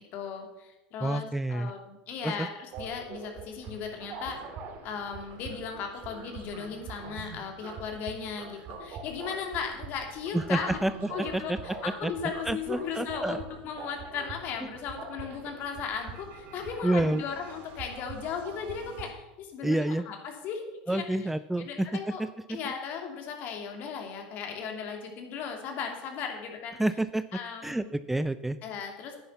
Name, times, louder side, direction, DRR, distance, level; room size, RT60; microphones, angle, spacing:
voice 1, 0.1-4.4 4.8-10.8 11.1-21.3 21.6-22.2 22.5-26.8 27.3-27.9 28.6-29.2, left 6 dB, 50° left, 3 dB, 2.7 m, -37 dB
voice 2, 1.0-1.7 2.2-2.5 10.3-10.9 11.2-11.6 12.0-12.1 12.5-13.4 16.8-17.2 19.6-20.0 20.9-21.9 22.2-22.6 26.8-27.2 27.6-28.6, right 1 dB, 5° right, 13 dB, 0.4 m, -28 dB
sound 1, 2.7-19.1, right 4 dB, 50° right, 2.4 m, -44 dB
10.0 x 9.8 x 5.7 m, 0.98 s
hypercardioid pair, 100°, 4 cm